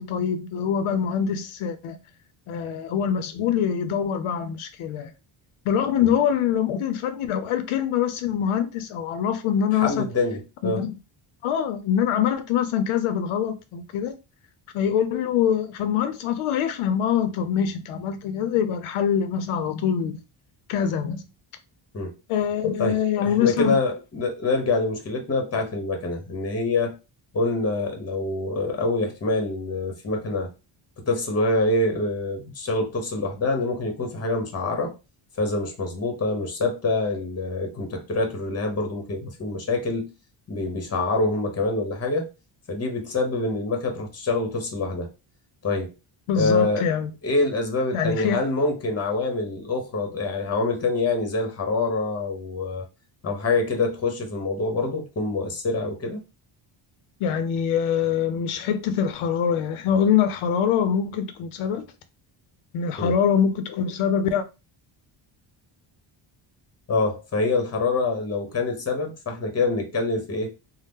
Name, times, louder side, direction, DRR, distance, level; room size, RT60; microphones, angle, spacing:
voice 1, 0.0-2.0 2.5-5.1 5.7-10.1 10.6-10.9 11.4-14.2 14.7-20.2 20.7-21.2 22.3-23.8 46.3-47.1 47.9-48.4 57.2-61.9 62.7-64.4, left 8 dB, 85° left, 0.6 m, -24 dB
voice 2, 9.8-10.8 21.9-22.1 22.8-27.0 27.3-30.5 31.1-34.9 35.4-40.1 40.5-42.3 42.7-45.1 45.6-45.9 46.3-46.9 47.2-52.8 53.2-56.2 63.0-63.1 66.9-70.5, left 3 dB, 30° left, 0.9 m, -25 dB
2.8 x 2.0 x 3.4 m
cardioid pair, 130°, 49 cm